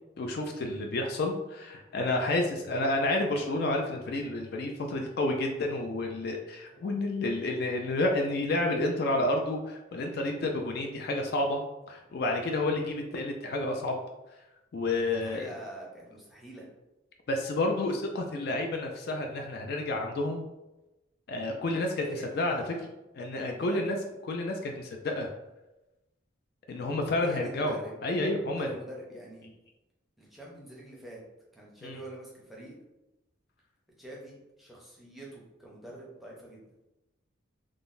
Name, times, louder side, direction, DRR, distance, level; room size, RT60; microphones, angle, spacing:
voice 1, 0.2-11.6 11.9-14.0 14.7-15.5 17.3-20.4 21.3-22.6 23.2-24.0 24.3-25.3 26.7-27.8 28.0-28.7 31.8-32.0, left 2 dB, 50° left, 2 dB, 0.3 m, -30 dB
voice 2, 15.0-16.7 22.0-22.9 23.5-23.9 27.2-27.9 28.6-29.5 30.2-31.2 31.5-32.8 34.0-36.6, right 1 dB, ahead, -4 dB, 0.6 m, -45 dB
3.7 x 2.0 x 2.5 m, 0.98 s
head